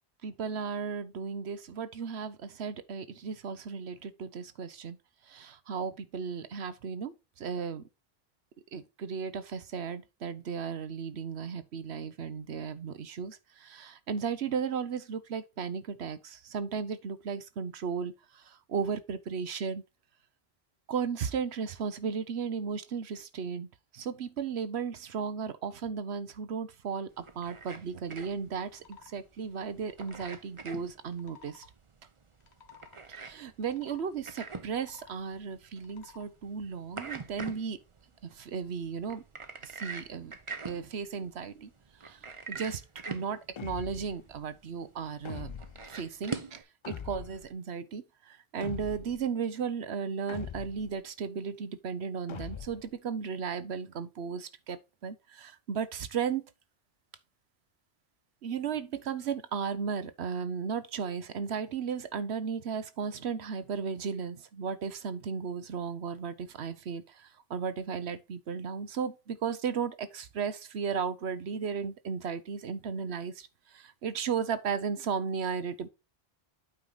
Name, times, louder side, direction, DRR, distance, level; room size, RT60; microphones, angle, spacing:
voice 1, 0.2-5.0 5.2-7.8 8.7-19.8 20.9-23.7 23.9-31.6 33.1-37.8 38.2-39.2 39.6-40.3 40.6-41.7 42.0-42.2 42.5-42.8 43.1-45.5 45.9-56.4 58.4-75.9, right 6 dB, 80° right, 1.1 m, -35 dB
sound 1, 27.1-46.6, right 4 dB, 30° right, 0.8 m, -44 dB
sound 2, 28.7-29.1 29.8-30.4 31.1-31.7 32.3-33.0 33.7-34.1 34.6-35.2 35.8-36.3, left 6 dB, 80° left, 1.4 m, -55 dB
sound 3, 43.6-44.2 45.2-45.9 46.8-47.5 48.6-49.2 50.3-51.0 52.3-52.9, left 7 dB, 50° left, 0.3 m, -42 dB
8.8 x 4.8 x 3.9 m
omnidirectional pair, 1.1 m